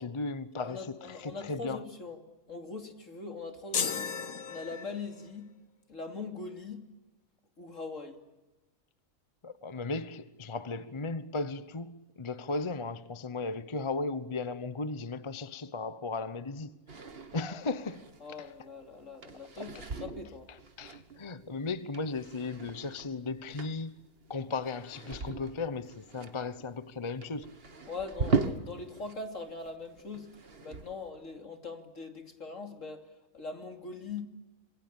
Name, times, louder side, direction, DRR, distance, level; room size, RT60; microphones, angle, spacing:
voice 1, 0.0-1.8 9.4-16.7 17.3-18.1 18.4-18.5 19.6-19.7 20.8-23.9 24.3-27.6, left 3 dB, 25° left, 0.8 m, -36 dB
voice 2, 0.6-4.1 4.5-5.5 5.9-6.9 7.6-8.2 18.2-20.5 27.9-34.3, left 4 dB, 65° left, 3.2 m, -42 dB
sound 1, 3.7-5.3, left 6 dB, 80° left, 1.8 m, -34 dB
sound 2, 16.9-29.2 29.5-31.1, right 4 dB, 45° right, 1.8 m, -39 dB
27.0 x 21.5 x 8.9 m
omnidirectional pair, 1.5 m